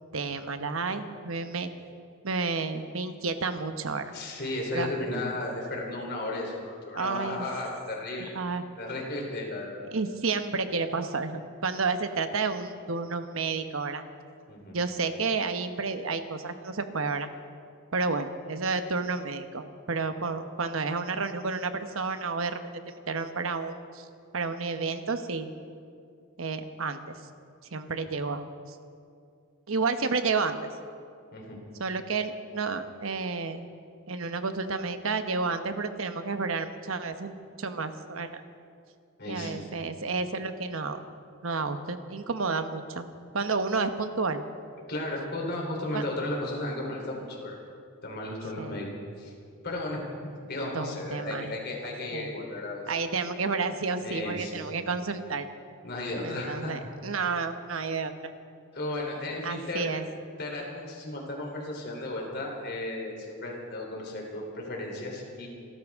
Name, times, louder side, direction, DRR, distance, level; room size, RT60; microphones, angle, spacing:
voice 1, 0.1-1.7 2.2-4.1 4.7-4.9 6.9-7.5 8.3-8.6 9.9-14.0 14.7-17.3 17.9-22.6 22.9-24.1 24.3-25.5 26.4-27.2 27.7-28.8 29.7-30.6 31.8-33.7 34.1-38.4 39.3-41.0 41.4-43.0 43.3-44.4 45.9-46.0 48.6-48.8 50.7-51.5 52.1-52.3 52.9-55.5 56.2-58.3 59.4-60.1, right 4 dB, 70° right, 8 dB, 1.0 m, -31 dB
voice 2, 4.1-8.4 8.8-9.8 14.5-14.8 31.3-31.6 39.2-39.6 44.9-47.6 48.0-48.9 49.2-49.3 49.6-50.0 50.5-52.9 54.0-54.6 55.8-56.7 58.7-59.9 60.4-65.5, left 2 dB, 50° left, -1 dB, 3.5 m, -34 dB
28.0 x 13.5 x 3.6 m, 2.3 s
head